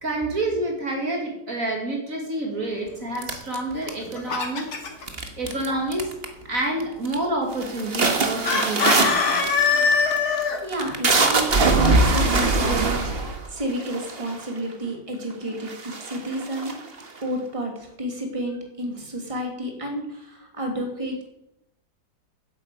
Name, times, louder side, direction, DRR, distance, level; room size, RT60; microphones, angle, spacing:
voice 1, 0.0-4.7 5.4-6.1 6.5-9.4, right 1 dB, 50° right, 1 dB, 2.5 m, -28 dB
sound 1, 3.2-4.3 5.1-5.7 5.9-6.4 6.8-7.2 7.5-14.6 15.2-15.3 15.6-17.2, right 3 dB, 35° right, 1.6 m, -23 dB
Chicken rooster, 3.8-5.0 8.4-10.6, left 5 dB, 65° left, 2.2 m, -22 dB
voice 2, 10.2-16.8 17.2-21.2, right 1 dB, 20° right, 2 dB, 2.5 m, -31 dB
10.5 x 8.1 x 8.2 m, 0.84 s
omnidirectional pair, 1.8 m